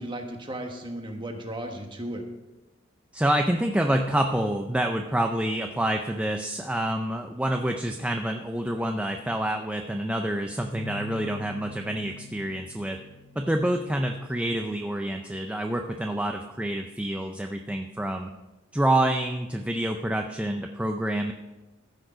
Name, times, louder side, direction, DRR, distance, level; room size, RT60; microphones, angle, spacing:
voice 1, 0.0-2.2, right 1 dB, 25° right, 3 dB, 1.3 m, -35 dB
voice 2, 3.1-13.0 13.4-18.3 18.7-21.3, right 1 dB, 5° right, 4 dB, 0.4 m, -27 dB
sound 1, 10.7-14.4, left 2 dB, 15° left, 2.2 m, -45 dB
14.5 x 6.3 x 5.1 m, 1.1 s
head